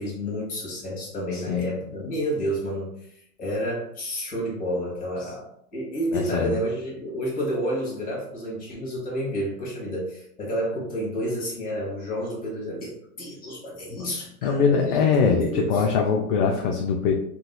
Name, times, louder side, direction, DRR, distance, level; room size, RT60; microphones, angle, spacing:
voice 1, 0.0-5.5 5.7-15.9, equal, 20° left, -3 dB, 1.3 m, -30 dB
voice 2, 1.3-1.6 6.1-6.6 13.9-14.1 14.4-17.2, left 6 dB, 45° left, 1 dB, 0.5 m, -22 dB
3.9 x 2.6 x 2.3 m, 0.71 s
hypercardioid pair, 125°, 44 cm